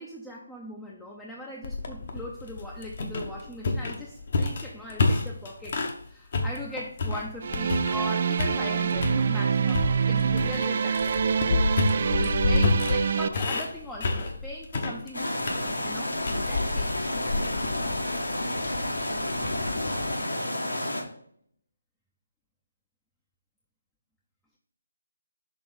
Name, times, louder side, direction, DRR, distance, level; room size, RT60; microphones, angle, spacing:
voice 1, 0.0-11.6 12.2-17.1, left 1 dB, 5° left, -4 dB, 0.6 m, -40 dB
sound 1, 1.6-6.0 6.3-8.1 8.4-9.2 9.7-20.2, left 3 dB, 45° left, 0.8 m, -29 dB
sound 2, 7.4-13.3, right 6 dB, 45° right, 0.3 m, -26 dB
sound 3, 15.1-21.0, left 1 dB, 80° left, 1.4 m, -30 dB
6.1 x 3.4 x 5.1 m, 0.64 s
figure-of-eight pair, 150°, 0 cm